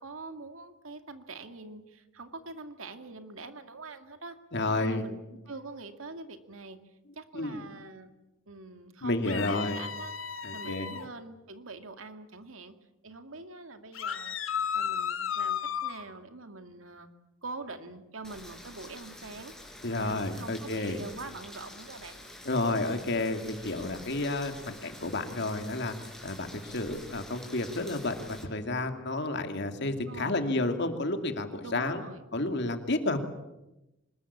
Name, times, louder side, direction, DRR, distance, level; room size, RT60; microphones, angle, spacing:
voice 1, 0.0-4.4 4.7-6.8 7.2-8.1 8.5-10.1 10.5-12.7 13.0-14.4 14.7-17.1 17.4-19.5 20.0-22.2 30.0-30.5 31.6-32.2, right 3 dB, 85° right, 8 dB, 2.3 m, -44 dB
voice 2, 4.5-5.1 7.3-7.7 9.0-9.8 10.4-11.0 19.8-21.0 22.4-25.9 26.2-32.0 32.3-33.2, left 2 dB, 60° left, 7 dB, 2.6 m, -31 dB
sound 1, 9.2-11.0 13.9-16.0, left 8 dB, 80° left, 2.3 m, -33 dB
Rain, 18.2-28.4, left 1 dB, 5° left, 4.7 m, -48 dB
25.5 x 21.0 x 8.6 m, 0.96 s
head